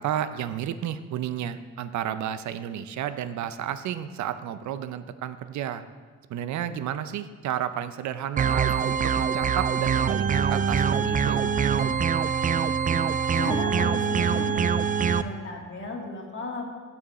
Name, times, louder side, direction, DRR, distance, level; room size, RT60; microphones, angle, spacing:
voice 1, 0.0-5.8 6.3-11.4, right 10 dB, 70° right, 12 dB, 0.6 m, -32 dB
sound 1, 8.4-15.2, right 6 dB, 30° right, 0.4 m, -24 dB
voice 2, 13.3-16.6, left 2 dB, 40° left, 1 dB, 1.9 m, -35 dB
8.4 x 7.8 x 4.1 m, 1.5 s
cardioid pair, 90°, 30 cm